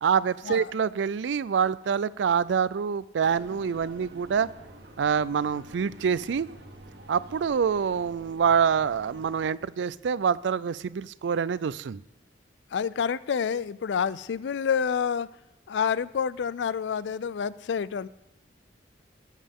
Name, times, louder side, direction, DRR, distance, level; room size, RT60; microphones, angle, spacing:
voice 1, 0.0-4.5 5.0-6.5 7.1-12.0, right 7 dB, 85° right, 18 dB, 0.4 m, -26 dB
sound 1, 3.2-9.5, right 1 dB, 70° right, 1.5 m, -48 dB
voice 2, 12.7-15.3 15.7-18.1, left 7 dB, 80° left, 19 dB, 0.4 m, -28 dB
19.0 x 7.4 x 3.6 m, 0.89 s
head